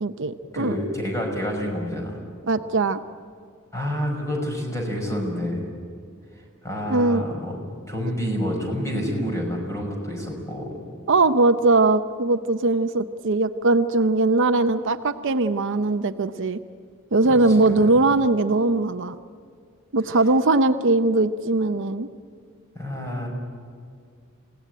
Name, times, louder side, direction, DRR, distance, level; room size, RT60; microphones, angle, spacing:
voice 1, 0.0-0.8 2.5-3.0 6.9-7.3 11.1-16.6 17.1-19.2 19.9-22.1, right 2 dB, 60° right, 10 dB, 0.7 m, -20 dB
voice 2, 0.5-2.2 3.7-5.6 6.6-7.5 7.9-10.8 17.3-17.4 17.6-17.9 22.8-23.3, equal, 15° left, 1 dB, 5.5 m, -28 dB
28.0 x 17.5 x 9.2 m, 2.3 s
head